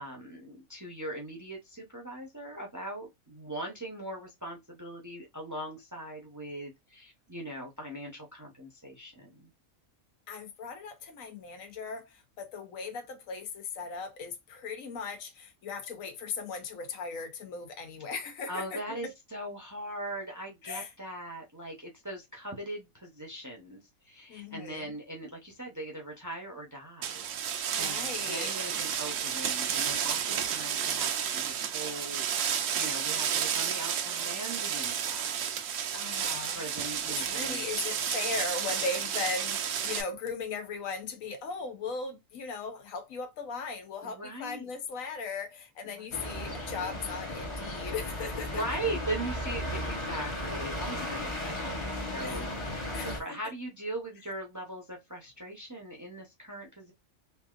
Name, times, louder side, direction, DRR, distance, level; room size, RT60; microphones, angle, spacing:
voice 1, 0.0-9.5 18.5-27.3 27.8-35.5 36.5-37.6 37.9-38.0 44.0-44.7 45.8-46.6 48.5-56.9, right 1 dB, 20° right, 0.6 m, -40 dB
voice 2, 10.3-19.1 20.6-20.9 24.3-25.0 27.7-28.5 35.9-36.6 37.1-48.6 52.2-52.4 52.9-53.1, left 4 dB, 80° left, 1.1 m, -38 dB
sound 1, 27.0-40.0, right 8 dB, 75° right, 0.9 m, -31 dB
sound 2, 46.1-53.2, left 1 dB, 30° left, 0.6 m, -35 dB
3.3 x 2.6 x 2.4 m
omnidirectional pair, 1.4 m